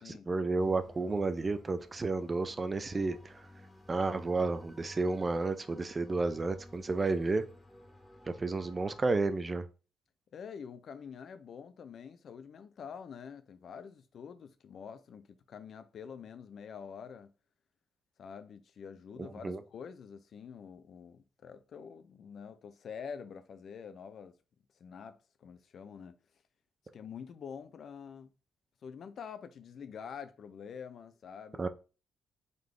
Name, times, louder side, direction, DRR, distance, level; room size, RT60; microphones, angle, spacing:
voice 1, 0.0-3.3 3.9-7.4 8.3-9.7 19.2-19.6 31.6-31.7, right 3 dB, 30° right, 0.5 m, -31 dB
sound 1, 0.6-9.2, left 1 dB, 10° left, 1.2 m, -53 dB
voice 2, 10.3-17.3 18.2-24.3 24.8-26.2 26.9-28.3 28.8-31.6, left 6 dB, 60° left, 0.5 m, -46 dB
3.9 x 3.5 x 3.2 m
cardioid pair, 90°, 0 cm